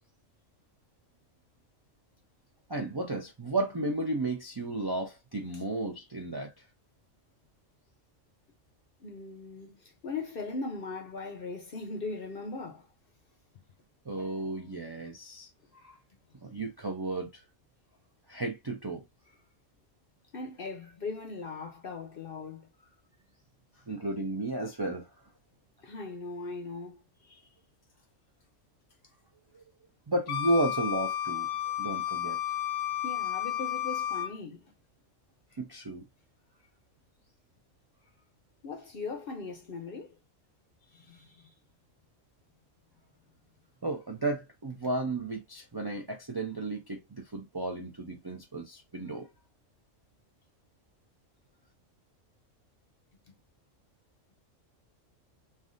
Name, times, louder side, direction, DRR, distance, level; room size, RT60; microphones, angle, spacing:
voice 1, 2.7-6.6 14.1-16.0 16.4-17.4 18.3-19.0 23.9-25.1 27.3-27.4 29.5-29.6 30.1-32.4 35.6-36.0 40.9-41.4 43.8-49.3, right 2 dB, 35° right, 0.4 m, -33 dB
voice 2, 9.0-12.9 20.3-22.9 23.8-23.9 25.8-27.0 33.0-34.7 38.6-40.2 41.0-41.5, left 3 dB, 55° left, 0.8 m, -39 dB
Wind instrument woodwind instrument, 30.3-34.3, left 11 dB, 80° left, 0.9 m, -32 dB
3.3 x 2.4 x 2.5 m
omnidirectional pair, 1.3 m